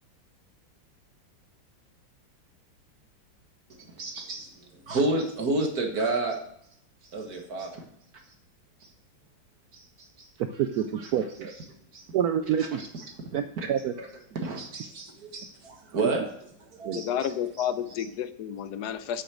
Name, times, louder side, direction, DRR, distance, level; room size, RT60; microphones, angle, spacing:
voice 1, 3.7-6.4 7.1-7.8 8.8-8.9 9.7-10.3 11.0-11.1 11.4-11.5 11.9-12.0 12.6-12.7 12.9-13.1 13.6-13.7 14.0-14.1 14.4-16.2 16.6-17.3 17.6-17.7, right 2 dB, 50° right, 2 dB, 1.8 m, -31 dB
voice 2, 10.6-11.5 12.1-12.9 13.3-13.4 13.7-13.9 16.8-17.0, right 9 dB, 90° right, 9 dB, 0.8 m, -27 dB
voice 3, 16.9-19.2, left 9 dB, 70° left, 12 dB, 1.0 m, -31 dB
8.0 x 6.3 x 8.1 m, 0.71 s
omnidirectional pair, 2.2 m